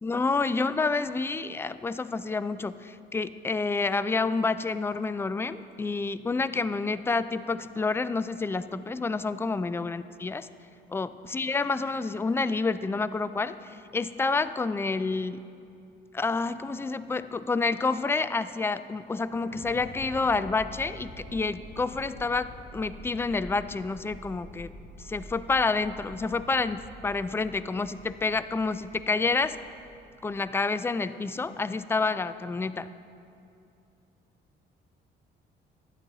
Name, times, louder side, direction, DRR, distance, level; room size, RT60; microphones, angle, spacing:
voice 1, 0.0-10.5 10.9-15.4 16.1-24.7 25.0-29.6 30.2-32.9, left 3 dB, 10° left, 14 dB, 0.3 m, -29 dB
sound 1, 19.2-30.3, equal, 85° left, 3.0 m, -47 dB
13.0 x 10.0 x 4.0 m, 2.6 s
cardioid pair, 90°, 20 cm